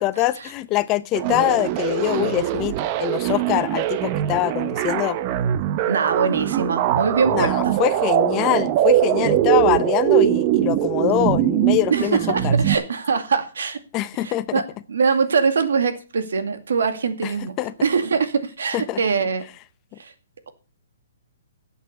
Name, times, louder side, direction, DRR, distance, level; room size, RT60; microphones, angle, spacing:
voice 1, 0.0-5.2 7.3-12.2 12.4-12.5 13.9-14.6 17.6-17.7 18.7-19.0, left 16 dB, 25° left, 0.6 m, -23 dB
sound 1, 1.1-12.8, right 12 dB, 30° right, 0.8 m, -21 dB
voice 2, 5.9-7.8 8.2-8.3 11.9-13.8 14.2-19.4 20.0-20.1, right 5 dB, 80° right, 2.3 m, -23 dB
11.0 x 8.2 x 6.7 m
hypercardioid pair, 160°, 0 cm